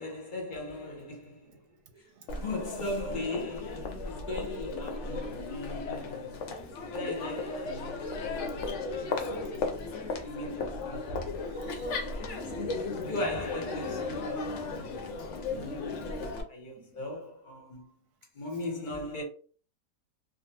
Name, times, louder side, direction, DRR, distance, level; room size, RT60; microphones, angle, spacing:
voice 1, 0.0-1.6 2.3-6.5 6.9-8.8 9.3-11.3 11.7-12.5 13.1-15.0 15.5-18.0 18.3-19.2, left 2 dB, 40° left, 0.8 m, -39 dB
voice 2, 1.9-2.5 8.7-9.2 10.9-11.9 12.4-12.6 15.6-15.8 16.1-16.3 16.8-16.9, right 6 dB, 85° right, 1.2 m, -56 dB
Crowd, 2.3-16.4, left 3 dB, 65° left, 0.8 m, -35 dB
3.3 x 2.3 x 2.8 m
omnidirectional pair, 1.6 m